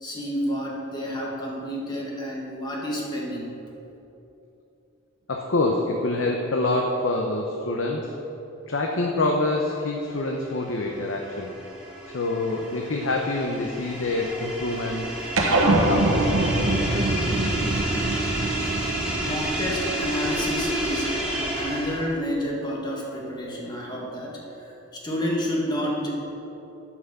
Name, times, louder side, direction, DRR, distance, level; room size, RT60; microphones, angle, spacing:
voice 1, 0.0-3.5 19.0-21.2 21.5-26.1, equal, 20° left, -3 dB, 1.8 m, -30 dB
voice 2, 5.3-8.1 8.7-11.5 12.1-15.1 15.5-16.5 23.6-23.7, left 2 dB, 70° left, 1 dB, 0.8 m, -26 dB
sound 1, 10.3-22.2, right 1 dB, 5° right, 1.8 m, -30 dB
sound 2, 15.4-20.1, right 2 dB, 90° right, 1.1 m, -24 dB
9.6 x 6.2 x 6.9 m, 3.0 s
head